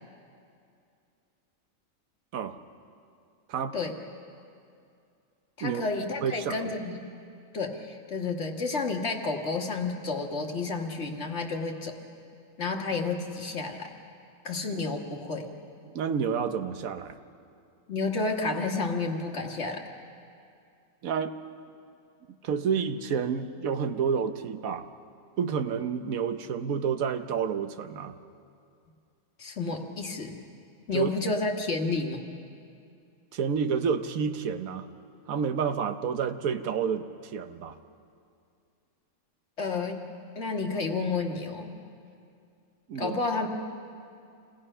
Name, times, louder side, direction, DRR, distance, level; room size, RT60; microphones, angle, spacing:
voice 1, 5.6-7.0 7.5-11.9 12.6-13.9 14.4-15.5 17.9-19.8 29.4-30.4 30.9-32.2 39.6-40.0 40.4-41.7 43.0-43.5, left 3 dB, 55° left, 2 dB, 1.8 m, -30 dB
voice 2, 6.2-6.7 15.8-17.2 21.0-21.3 22.4-24.9 25.4-28.2 30.9-31.1 33.3-34.9 35.3-37.8 42.9-43.2, right 6 dB, 90° right, 8 dB, 1.3 m, -29 dB
28.0 x 18.0 x 5.6 m, 2.4 s
omnidirectional pair, 1.4 m